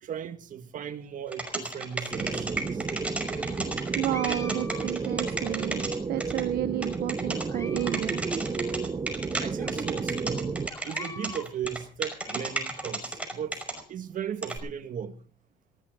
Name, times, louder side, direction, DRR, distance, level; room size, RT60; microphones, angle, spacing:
voice 1, 0.0-2.9 9.4-10.5 10.8-13.6 13.9-15.2, right 8 dB, 50° right, 2.1 m, -37 dB
sound 1, 1.3-6.4 6.8-7.4 7.8-9.4 9.7-13.8 14.4-14.6, right 2 dB, 5° right, 5.4 m, -32 dB
sound 2, 2.1-10.7, right 4 dB, 25° right, 1.1 m, -32 dB
voice 2, 4.0-5.8 6.1-8.2, right 15 dB, 70° right, 0.6 m, -31 dB
sound 3, 4.1-5.5 6.2-6.8 7.3-8.0 8.3-8.4 9.1-9.2 9.6-9.7 10.7-11.5 12.0-12.9, left 2 dB, 20° left, 2.6 m, -44 dB
19.0 x 16.5 x 4.0 m
cardioid pair, 110°, 17 cm